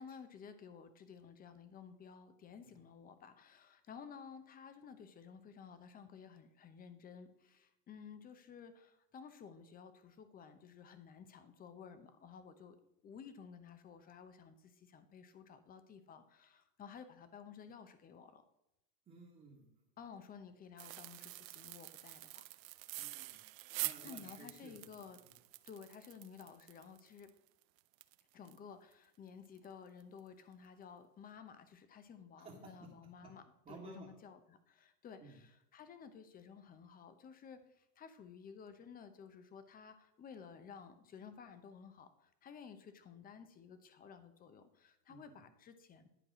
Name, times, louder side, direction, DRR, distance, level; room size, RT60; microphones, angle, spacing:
voice 1, 0.0-12.8 13.0-18.4 20.0-22.5 24.0-25.2 25.7-27.3 28.3-46.1, left 6 dB, 20° left, 10 dB, 0.8 m, -54 dB
voice 2, 19.1-19.7 23.0-23.4 23.8-25.0 32.4-32.9 33.2-33.3 33.6-34.1 35.2-35.4 45.1-45.4, right 4 dB, 15° right, -4 dB, 1.6 m, -55 dB
sound 1, 20.8-28.6 28.9-29.0 29.5-29.7 30.0-30.2, right 19 dB, 55° right, 0.6 m, -46 dB
11.0 x 4.7 x 6.0 m, 0.86 s
supercardioid pair, 140°, 49 cm